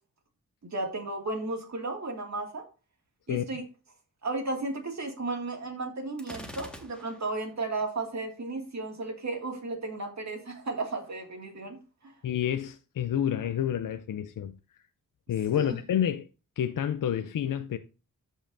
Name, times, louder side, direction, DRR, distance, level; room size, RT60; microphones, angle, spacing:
voice 1, 0.6-2.6 3.3-3.6 4.2-11.8 12.0-12.1 15.6-15.8, right 2 dB, 55° right, 2.3 m, -34 dB
Gunshot gunfire, 6.2-7.4, equal, 5° left, 1.6 m, -44 dB
voice 2, 12.2-14.5 15.3-16.3 16.6-17.8, left 10 dB, 70° left, 0.6 m, -29 dB
13.5 x 5.6 x 2.6 m
cardioid pair, 70°, 33 cm